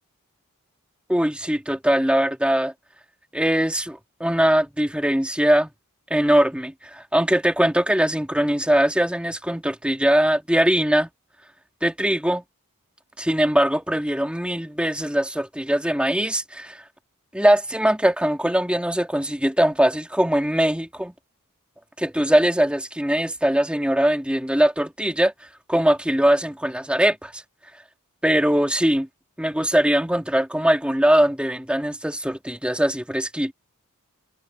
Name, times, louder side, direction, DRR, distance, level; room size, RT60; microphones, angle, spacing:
voice 1, 1.1-2.7 3.3-5.7 6.1-11.1 11.8-12.4 13.2-16.8 17.3-21.1 22.0-25.3 25.7-27.4 28.2-29.1 29.4-33.5, right 1 dB, 5° right, 2.2 m, -21 dB
head